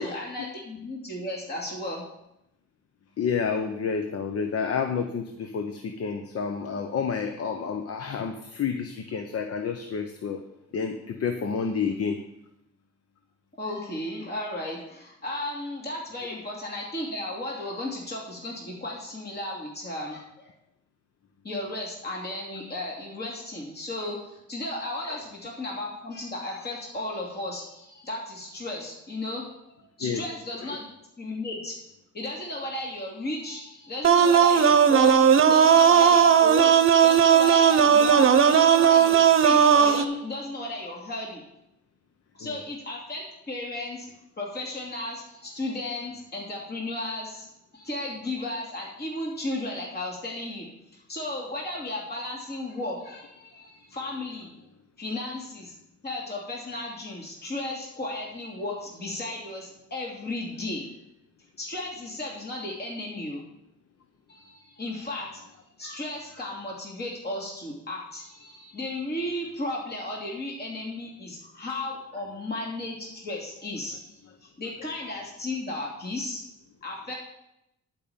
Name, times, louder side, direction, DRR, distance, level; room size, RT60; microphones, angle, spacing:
voice 1, 0.0-2.1 13.6-20.5 21.4-30.9 31.2-31.8 32.1-35.2 35.4-41.4 42.3-44.1 44.4-47.5 47.7-50.7 50.9-54.5 55.0-55.7 56.0-60.8 61.6-63.4 64.3-65.4 65.8-74.0 74.4-76.4 76.8-77.1, left 1 dB, 35° left, -3 dB, 2.7 m, -34 dB
voice 2, 3.2-10.4 10.7-12.2 25.0-25.2 30.0-30.2 30.6-30.7 42.4-42.6, left 6 dB, 50° left, 6 dB, 0.9 m, -29 dB
sound 1, 34.0-40.0, right 7 dB, 45° right, 0.9 m, -17 dB
11.5 x 5.4 x 6.9 m, 0.84 s
cardioid pair, 90°, 30 cm